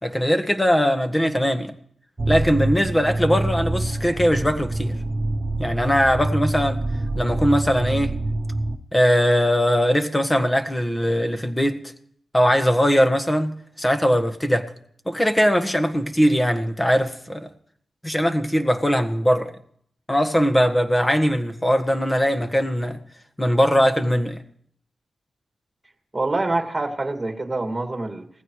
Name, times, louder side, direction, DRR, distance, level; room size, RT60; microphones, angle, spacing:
voice 1, 0.0-1.7 2.3-5.0 5.6-6.8 7.1-8.1 8.9-11.8 12.3-13.5 13.8-14.7 15.1-17.5 18.0-19.5 20.1-23.0 23.4-24.4, equal, 20° left, 1.6 m, -20 dB
sound 1, 2.2-8.8, right 2 dB, 45° right, 1.1 m, -26 dB
voice 2, 26.1-28.3, right 2 dB, 25° right, 2.3 m, -25 dB
19.0 x 15.5 x 3.2 m
supercardioid pair, 40°, 0 cm